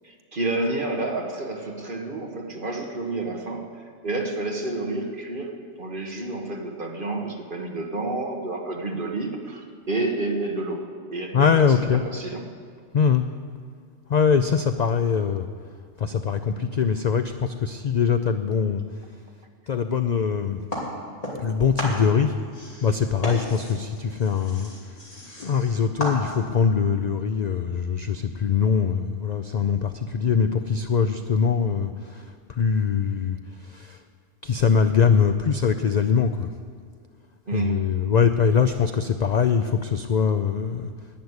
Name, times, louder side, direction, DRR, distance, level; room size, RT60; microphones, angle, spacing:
voice 1, 0.0-3.7 4.0-12.4 37.5-37.9, right 2 dB, 45° right, 2 dB, 1.7 m, -29 dB
voice 2, 11.3-12.0 12.9-13.2 14.1-15.5 16.0-18.8 19.7-20.6 21.4-22.4 22.8-24.7 25.4-33.4 33.6-34.0 34.4-36.5 37.5-40.9, left 6 dB, 55° left, 9 dB, 0.5 m, -22 dB
sound 1, 20.7-21.5 21.8-26.6, equal, 30° left, 3.0 m, -34 dB
11.0 x 9.5 x 9.6 m, 2.1 s
omnidirectional pair, 1.3 m